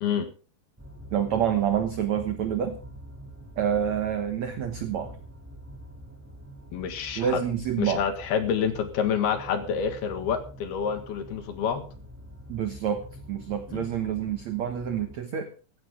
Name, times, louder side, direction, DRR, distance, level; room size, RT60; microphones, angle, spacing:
sound 1, 0.8-15.2, equal, 5° right, 1.6 m, -45 dB
voice 1, 1.1-2.8 3.6-5.2 7.2-8.0 12.5-15.5, right 9 dB, 85° right, 8 dB, 1.5 m, -28 dB
voice 2, 6.7-7.4 7.8-11.9 13.7-13.8, left 7 dB, 65° left, 8 dB, 3.5 m, -28 dB
16.5 x 15.0 x 3.7 m, 0.35 s
omnidirectional pair, 5.2 m